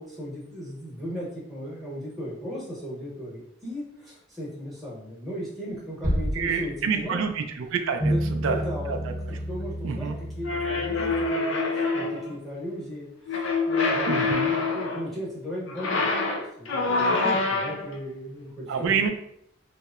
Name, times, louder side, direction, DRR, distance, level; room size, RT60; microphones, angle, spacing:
voice 1, 0.0-7.3 8.0-8.9 9.5-19.1, equal, ahead, -7 dB, 0.9 m, -37 dB
sound 1, 6.0-7.4, equal, 40° right, 0.7 m, -29 dB
voice 2, 6.3-8.6 8.9-9.1 9.8-10.2 14.1-14.5 18.7-19.1, right 6 dB, 75° right, 5 dB, 0.3 m, -27 dB
sound 2, 8.0-11.3, equal, 35° left, 0.7 m, -30 dB
sound 3, 10.4-12.3 13.3-15.1 15.7-18.0, left 3 dB, 70° left, 0.5 m, -26 dB
2.7 x 2.0 x 2.3 m, 0.73 s
head